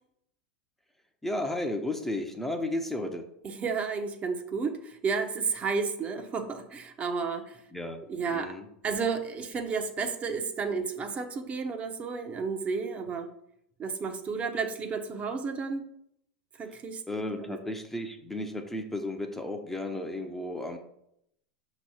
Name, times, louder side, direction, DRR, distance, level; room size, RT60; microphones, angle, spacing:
voice 1, 1.2-3.3 7.7-8.7 16.7-16.8 17.1-20.8, left 1 dB, 5° left, 4 dB, 0.8 m, -34 dB
voice 2, 3.4-7.6 8.1-8.5 8.8-13.3 13.8-15.8 16.6-17.0 17.4-17.6, right 5 dB, 30° right, 5 dB, 0.9 m, -32 dB
6.0 x 3.0 x 5.7 m, 0.75 s
figure-of-eight pair, 85°, 5 cm